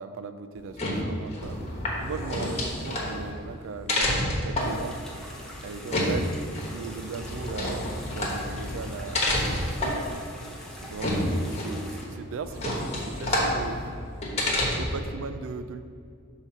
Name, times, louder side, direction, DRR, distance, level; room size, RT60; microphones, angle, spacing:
voice 1, 0.0-1.6 2.0-5.0 5.6-10.0 10.8-13.8 14.8-15.8, right 5 dB, 70° right, 11 dB, 0.3 m, -38 dB
sound 1, 0.6-15.1, left 1 dB, 30° left, 1.1 m, -29 dB
sound 2, 4.6-12.0, left 1 dB, 5° left, 0.8 m, -44 dB
5.7 x 4.0 x 5.9 m, 2.3 s
head